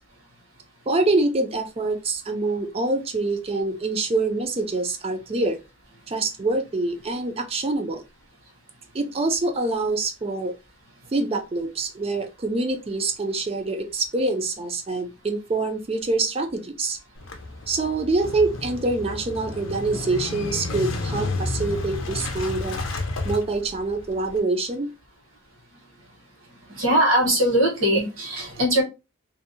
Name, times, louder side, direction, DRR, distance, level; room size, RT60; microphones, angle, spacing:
voice 1, 0.9-5.6 6.1-8.0 8.9-10.5 11.1-17.0 17.7-22.8 23.2-24.9, right 3 dB, 30° right, 0.3 m, -25 dB
Motorcycle / Engine starting, 17.2-24.4, left 2 dB, 80° left, 0.5 m, -31 dB
voice 2, 26.7-28.8, right 1 dB, 85° right, 1.2 m, -21 dB
2.6 x 2.1 x 2.5 m
head